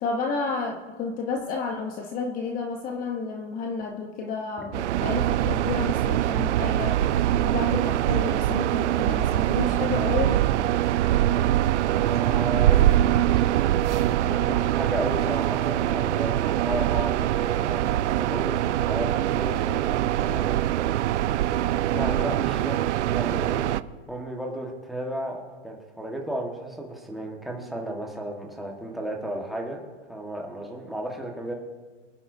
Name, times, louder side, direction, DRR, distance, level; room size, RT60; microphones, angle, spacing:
voice 1, 0.0-7.0 7.4-10.4, left 4 dB, 25° left, 3 dB, 0.9 m, -31 dB
sound 1, 4.7-23.8, right 13 dB, 75° right, 0.5 m, -23 dB
voice 2, 11.9-20.6 21.9-23.8 24.1-29.8 30.1-31.5, right 1 dB, ahead, -1 dB, 1.4 m, -34 dB
25.5 x 9.8 x 2.7 m, 1.4 s
hypercardioid pair, 150°, 36 cm